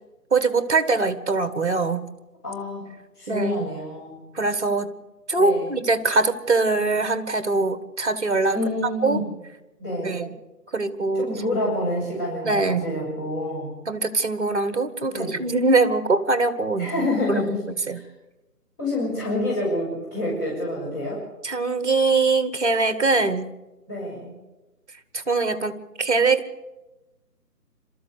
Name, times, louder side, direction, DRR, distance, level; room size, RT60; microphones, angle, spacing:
voice 1, 0.3-2.1 3.3-3.7 4.3-4.9 5.3-8.6 9.0-9.2 10.0-10.3 10.7-11.3 12.4-12.8 13.9-16.9 17.3-17.4 17.9-18.0 21.4-23.5 25.1-26.5, right 3 dB, 45° right, 12 dB, 1.6 m, -22 dB
voice 2, 2.4-2.9 3.1-4.2 5.4-5.7 8.5-9.2 9.8-10.1 11.1-13.7 15.0-15.4 16.8-18.1 18.8-21.2 23.9-24.3, left 1 dB, 15° left, -9 dB, 6.5 m, -27 dB
27.0 x 13.5 x 8.2 m, 1.1 s
figure-of-eight pair, 155°, 48 cm